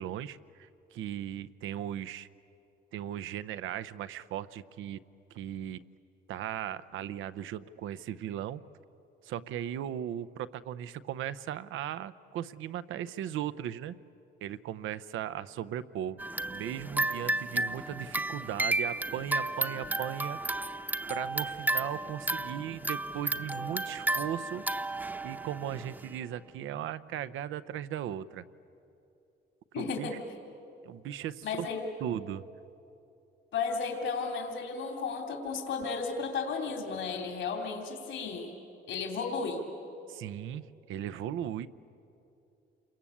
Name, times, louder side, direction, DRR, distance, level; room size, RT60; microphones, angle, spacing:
voice 1, 0.0-2.3 2.9-5.0 5.3-5.8 6.3-8.6 9.2-14.0 14.4-16.2 16.5-20.4 21.1-24.6 25.2-28.4 29.8-30.2 30.8-31.7 32.0-32.5 40.1-41.7, right 10 dB, 85° right, 14 dB, 0.7 m, -37 dB
sound 1, 16.2-26.2, right 2 dB, 10° right, 0.8 m, -33 dB
voice 2, 29.7-30.2 31.4-31.8 33.5-38.5 38.9-39.6, left 5 dB, 70° left, 3 dB, 3.1 m, -34 dB
28.0 x 23.5 x 8.5 m, 2.8 s
cardioid pair, 90°, 20 cm